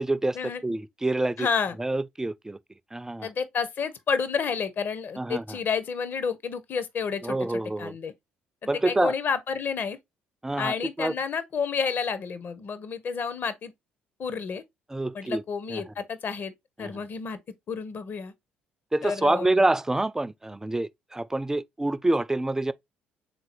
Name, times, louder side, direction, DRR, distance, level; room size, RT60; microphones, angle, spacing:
voice 1, 0.0-0.4 0.6-1.5 1.8-2.6 2.9-3.3 5.2-5.6 7.2-8.0 8.7-9.1 10.4-11.1 14.9-15.4 15.7-15.8 16.8-16.9 18.9-22.7, right 2 dB, 10° right, 0.4 m, -27 dB
voice 2, 1.4-1.7 3.2-7.4 7.8-8.1 8.8-10.0 10.6-13.7 14.2-14.6 15.1-16.5 16.8-17.4 17.7-18.3 19.0-19.6, left 6 dB, 50° left, 0.7 m, -30 dB
3.8 x 2.6 x 4.3 m
hypercardioid pair, 55°, 4 cm